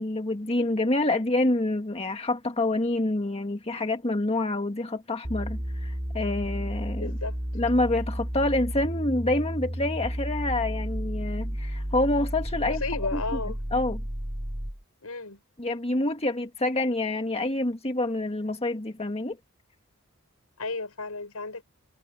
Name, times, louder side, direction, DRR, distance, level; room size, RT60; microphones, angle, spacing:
voice 1, 0.0-7.2 7.5-13.2 13.7-14.0 15.6-19.4, left 2 dB, 30° left, 1.7 m, -27 dB
sound 1, 5.2-14.8, equal, 20° right, 2.5 m, -32 dB
voice 2, 7.0-7.4 12.6-13.6 15.0-15.4 20.6-21.6, left 3 dB, 85° left, 5.5 m, -33 dB
head